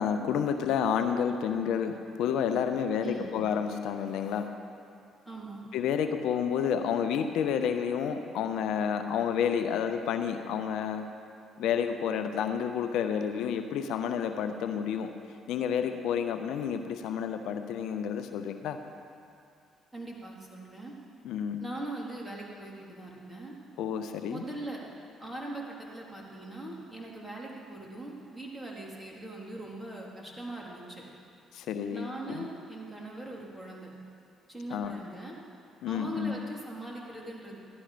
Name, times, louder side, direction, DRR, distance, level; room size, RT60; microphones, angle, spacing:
voice 1, 0.0-4.5 5.7-11.0 11.6-15.1 15.5-18.8 21.2-21.6 23.8-24.4 31.5-32.5 34.7-34.9 35.8-36.4, left 7 dB, 75° left, 8 dB, 0.7 m, -30 dB
voice 2, 3.0-3.3 5.2-5.6 19.9-20.9 21.6-23.5 24.3-24.8 25.2-31.0 31.9-33.9 34.5-35.3 35.9-37.6, right 1 dB, 10° right, -3 dB, 3.4 m, -41 dB
15.5 x 11.5 x 5.1 m, 2.5 s
supercardioid pair, 60°, 0 cm